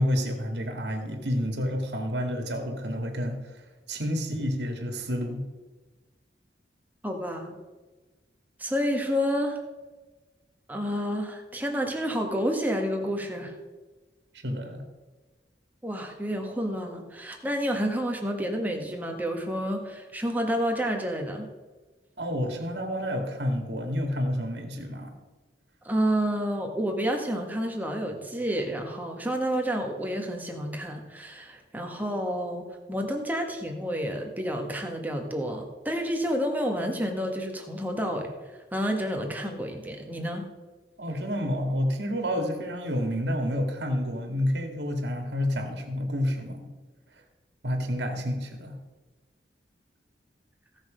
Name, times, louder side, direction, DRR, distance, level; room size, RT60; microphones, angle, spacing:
voice 1, 0.0-3.6 3.9-5.5 14.4-14.8 22.2-25.1 41.0-46.7 47.6-48.8, equal, 70° right, 4 dB, 2.0 m, -29 dB
voice 2, 7.0-7.6 8.6-9.6 10.7-13.5 15.8-21.5 25.8-38.3 38.7-40.4, equal, 10° right, 2 dB, 1.5 m, -29 dB
16.5 x 6.5 x 5.1 m, 1.2 s
head